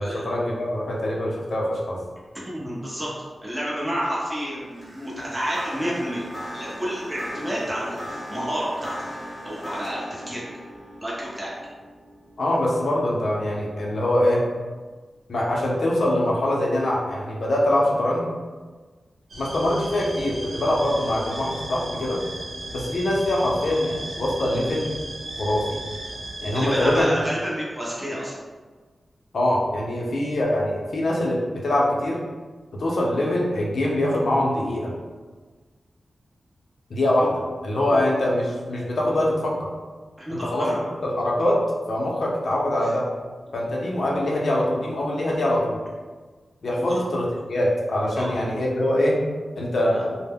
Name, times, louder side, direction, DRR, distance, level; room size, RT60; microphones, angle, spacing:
voice 1, 0.0-2.0 12.4-14.4 15.3-18.2 19.4-22.2 22.7-24.9 25.4-25.8 26.4-27.2 29.3-32.2 32.8-34.9 36.9-39.7 40.3-40.7 41.0-41.6 41.9-43.1 43.5-45.8 46.6-49.2 49.6-50.2, left 1 dB, 70° left, -3 dB, 0.5 m, -23 dB
voice 2, 2.4-3.1 3.4-6.3 6.5-8.9 9.4-10.4 11.0-11.5 26.5-28.4 37.9-38.0 40.2-40.8 42.8-42.9 46.9-47.0 48.2-48.3, equal, 15° right, -7 dB, 0.8 m, -29 dB
sound 1, 4.6-14.0, equal, 30° left, 0.9 m, -39 dB
sound 2, 19.3-27.0, right 1 dB, 80° right, 0.7 m, -36 dB
2.1 x 2.1 x 3.5 m, 1.4 s
wide cardioid pair, 125°, 0 cm